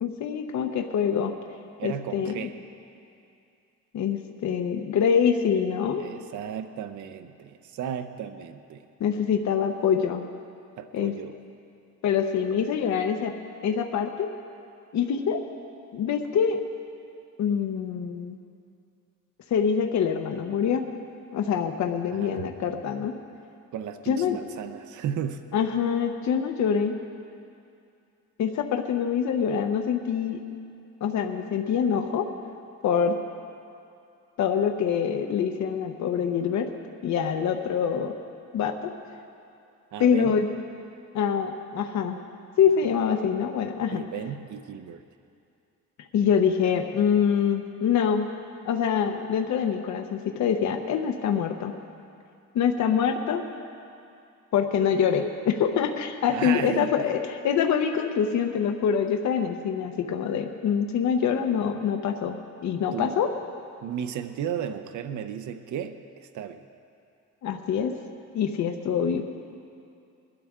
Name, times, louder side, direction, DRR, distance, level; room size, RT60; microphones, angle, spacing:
voice 1, 0.0-1.3 1.8-2.5 3.9-6.0 9.0-10.2 10.9-11.1 12.0-13.3 13.6-14.3 14.9-15.4 15.9-16.6 17.4-18.4 19.5-20.8 21.3-23.1 24.1-24.4 25.5-26.9 28.4-30.4 31.0-32.3 32.8-33.2 34.4-36.7 37.0-38.1 38.5-38.9 40.0-40.5 41.1-42.2 42.6-44.0 46.1-48.3 48.6-51.7 52.5-53.4 54.5-62.3 62.6-63.3 67.4-67.9 68.3-69.2, left 7 dB, 65° left, 5 dB, 0.8 m, -25 dB
voice 2, 1.8-2.5 6.0-8.8 10.8-11.3 22.0-22.4 23.7-25.4 39.9-40.4 42.8-42.9 43.9-45.0 56.3-56.9 62.9-63.2 63.8-66.0 66.3-66.6, right 9 dB, 75° right, 8 dB, 0.7 m, -34 dB
21.0 x 12.5 x 3.6 m, 2.5 s
cardioid pair, 145°, 30 cm